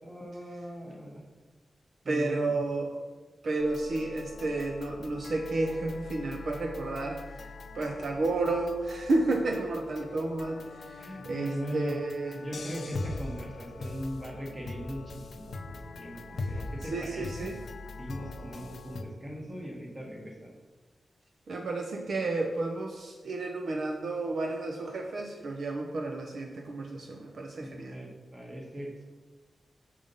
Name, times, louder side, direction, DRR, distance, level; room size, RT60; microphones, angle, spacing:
voice 1, 0.0-1.2 2.0-2.6 11.0-11.9 12.3-17.6 18.0-20.5 27.6-29.0, equal, 25° right, -1 dB, 1.5 m, -39 dB
voice 2, 2.1-3.0 3.4-7.2 7.7-10.6 10.9-12.4 16.9-17.6 21.5-27.9, right 2 dB, 65° right, 2 dB, 0.7 m, -31 dB
sound 1, 3.6-19.0, left 3 dB, 65° left, 0.6 m, -42 dB
6.6 x 5.0 x 5.5 m, 1.3 s
wide cardioid pair, 165°, 0 cm